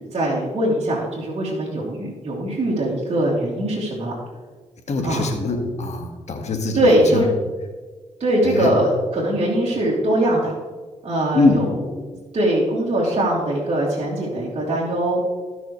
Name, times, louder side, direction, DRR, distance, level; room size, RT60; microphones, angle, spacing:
voice 1, 0.0-4.1 5.0-5.3 6.7-7.3 8.2-10.6 11.0-11.8 12.1-15.2, right 1 dB, 55° right, -7 dB, 2.9 m, -21 dB
voice 2, 4.9-6.9 7.1-7.2 8.4-8.7 11.3-11.6, left 3 dB, 65° left, 3 dB, 2.1 m, -22 dB
18.0 x 6.2 x 3.4 m, 1.4 s
supercardioid pair, 55°, 12 cm